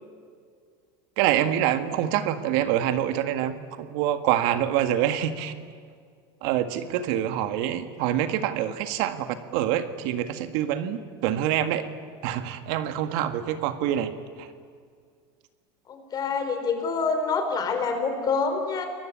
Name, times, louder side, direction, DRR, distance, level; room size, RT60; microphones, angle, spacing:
voice 1, 1.2-5.5 6.4-11.9 12.2-14.5, right 11 dB, 65° right, 9 dB, 1.8 m, -26 dB
voice 2, 15.9-18.9, left 4 dB, 30° left, 6 dB, 4.4 m, -26 dB
29.0 x 22.5 x 8.7 m, 2.1 s
supercardioid pair, 130°, 13 cm